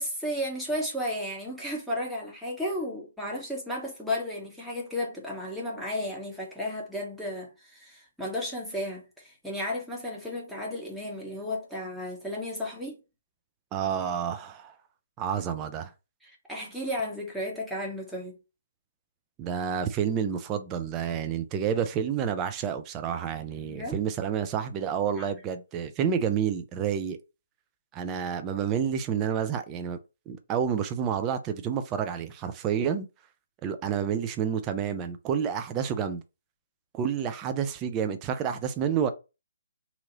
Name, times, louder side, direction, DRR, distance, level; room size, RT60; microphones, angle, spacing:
voice 1, 0.0-13.0 16.2-18.4 23.7-24.0 25.2-25.3, left 1 dB, ahead, 0.9 m, -33 dB
voice 2, 13.7-14.7 15.2-15.9 19.4-27.2 27.9-30.0 30.3-33.1 33.6-36.2 36.9-39.1, right 8 dB, 20° right, 0.4 m, -29 dB
2.8 x 2.7 x 3.9 m
figure-of-eight pair, 135°, 0 cm